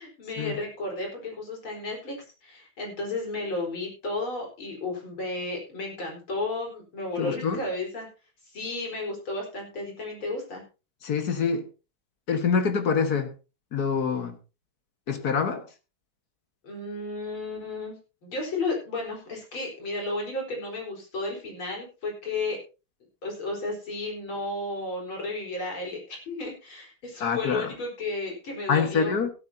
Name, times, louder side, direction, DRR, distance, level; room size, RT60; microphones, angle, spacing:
voice 1, 0.0-2.2 2.4-8.1 8.5-10.6 16.6-18.0 18.2-22.6 23.2-29.1, left 2 dB, 70° left, 0 dB, 5.3 m, -33 dB
voice 2, 7.2-7.6 11.0-11.6 12.3-13.3 13.7-14.4 15.1-15.7 27.2-27.7 28.7-29.3, left 6 dB, 45° left, 7 dB, 2.0 m, -25 dB
16.0 x 13.0 x 2.8 m, 0.31 s
omnidirectional pair, 2.4 m